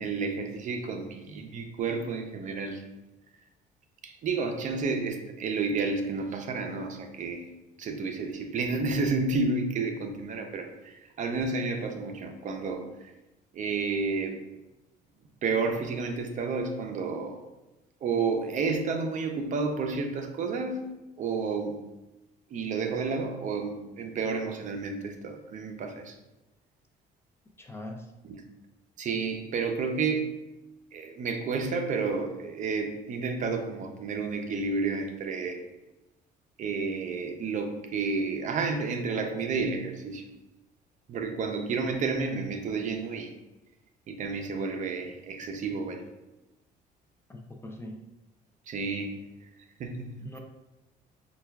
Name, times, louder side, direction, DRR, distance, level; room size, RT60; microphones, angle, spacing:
voice 1, 0.0-2.8 4.0-7.5 7.8-13.1 13.5-14.4 15.4-17.4 18.0-20.9 21.2-21.8 22.5-26.2 28.2-28.4 29.0-30.4 30.9-35.6 36.6-40.3 41.1-43.3 44.1-46.0 48.7-49.2 49.8-50.2, right 4 dB, 50° right, 5 dB, 0.5 m, -31 dB
voice 2, 27.6-28.1 47.3-48.0 50.2-50.4, left 1 dB, 15° left, 2 dB, 0.3 m, -41 dB
5.4 x 2.3 x 2.2 m, 1.0 s
cardioid pair, 110°, 17 cm